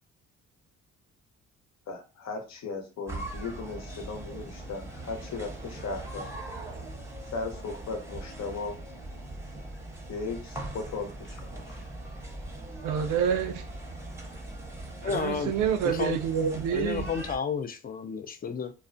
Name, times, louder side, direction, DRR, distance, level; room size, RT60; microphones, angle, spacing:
voice 1, 1.9-6.4 7.3-8.8 10.1-11.8, left 4 dB, 60° left, 0.8 m, -37 dB
sound 1, 3.1-17.4, right 2 dB, 10° right, 0.7 m, -41 dB
voice 2, 12.8-13.7 15.0-17.1, right 8 dB, 90° right, 0.5 m, -28 dB
voice 3, 15.0-15.5 15.8-16.2 16.7-18.7, left 5 dB, 30° left, 0.4 m, -31 dB
2.4 x 2.1 x 2.5 m
cardioid pair, 90°, 30 cm